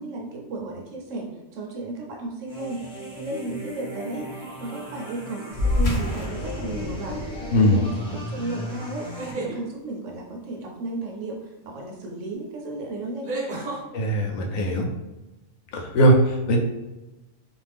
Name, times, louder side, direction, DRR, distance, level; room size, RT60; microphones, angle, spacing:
voice 1, 0.0-2.8 3.2-7.2 7.5-7.8 8.1-9.1 9.3-13.6, right 2 dB, 70° right, 0 dB, 1.0 m, -34 dB
sound 1, 2.5-9.3, left 1 dB, 5° left, 0.5 m, -37 dB
sound 2, 5.5-10.4, left 2 dB, 65° left, 0.3 m, -30 dB
sound 3, 6.4-6.8 8.9-9.6 11.9-12.0 13.2-13.8, right 3 dB, 45° right, 0.8 m, -32 dB
voice 2, 7.5-7.8 13.9-14.9 15.7-16.6, equal, 90° left, 2 dB, 1.0 m, -20 dB
2.5 x 2.4 x 3.3 m, 1.0 s
omnidirectional pair, 1.4 m